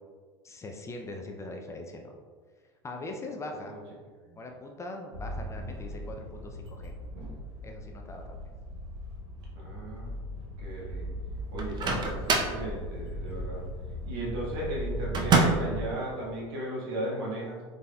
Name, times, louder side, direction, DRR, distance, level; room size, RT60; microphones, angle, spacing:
voice 1, 0.4-2.2 2.8-3.8 4.4-6.9 7.6-8.4, left 2 dB, 20° left, 2 dB, 0.4 m, -41 dB
sound 1, 5.1-15.9, equal, 85° right, 0.8 m, -38 dB
voice 2, 9.5-10.1 10.6-11.1 11.5-13.6 14.0-17.6, right 1 dB, 70° right, -5 dB, 1.4 m, -36 dB
Microwave oven, 11.6-12.6 15.1-15.8, right 4 dB, 30° right, 0.6 m, -25 dB
4.0 x 3.3 x 2.2 m, 1.5 s
hypercardioid pair, 90°, 14 cm